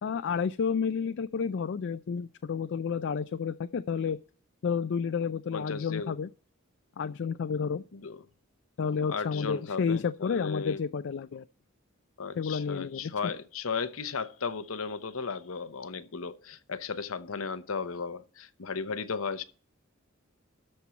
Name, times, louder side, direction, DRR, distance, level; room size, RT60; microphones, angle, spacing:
voice 1, 0.0-4.2 4.6-6.3 7.0-7.8 8.8-11.4 12.4-13.1, left 6 dB, 60° left, 0.4 m, -30 dB
voice 2, 5.5-6.2 7.9-8.2 9.1-10.8 12.2-19.4, left 5 dB, 80° left, 0.8 m, -35 dB
13.0 x 4.5 x 6.9 m
head